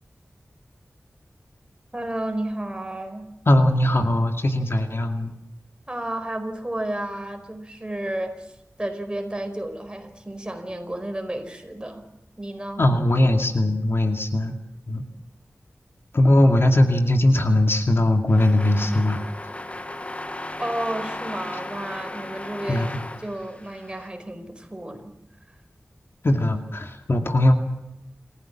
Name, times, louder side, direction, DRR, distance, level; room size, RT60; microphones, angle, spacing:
voice 1, 1.9-3.3 5.9-8.5 8.8-12.0 12.4-12.8 20.6-22.9 23.2-25.0, right 1 dB, 20° right, 6 dB, 4.6 m, -32 dB
voice 2, 3.5-5.3 12.8-14.5 14.9-15.0 16.1-19.2 22.7-23.0 26.2-27.6, left 1 dB, 55° left, 5 dB, 2.3 m, -20 dB
sound 1, 18.3-24.1, left 1 dB, 25° left, 1.4 m, -36 dB
28.5 x 15.5 x 7.3 m, 0.87 s
wide cardioid pair, 80°, 5 cm